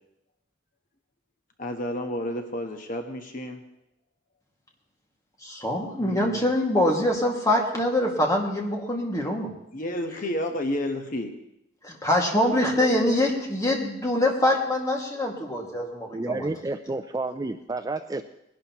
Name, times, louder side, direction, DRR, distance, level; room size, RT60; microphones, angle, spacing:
voice 1, 1.6-3.6 6.0-6.4 9.7-11.3, left 1 dB, 45° left, 4 dB, 1.2 m, -31 dB
voice 2, 5.4-9.5 11.8-16.4, left 1 dB, 20° left, -1 dB, 2.1 m, -24 dB
voice 3, 16.1-18.2, right 2 dB, 20° right, 7 dB, 0.4 m, -30 dB
20.5 x 11.5 x 3.0 m, 0.81 s
head